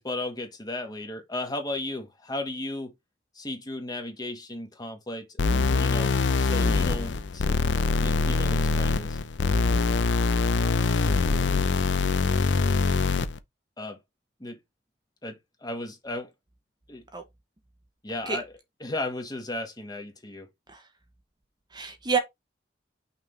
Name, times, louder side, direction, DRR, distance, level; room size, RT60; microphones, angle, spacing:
voice 1, 0.0-2.9 3.3-7.6 8.0-9.2 13.8-14.0 14.4-14.6 15.2-16.3 16.9-17.0 18.0-18.4 18.8-20.5, left 2 dB, 20° left, 1.6 m, -35 dB
sound 1, 5.4-13.4, left 4 dB, 75° left, 0.6 m, -24 dB
voice 2, 21.7-22.2, right 5 dB, 25° right, 1.0 m, -28 dB
6.0 x 3.7 x 4.5 m
head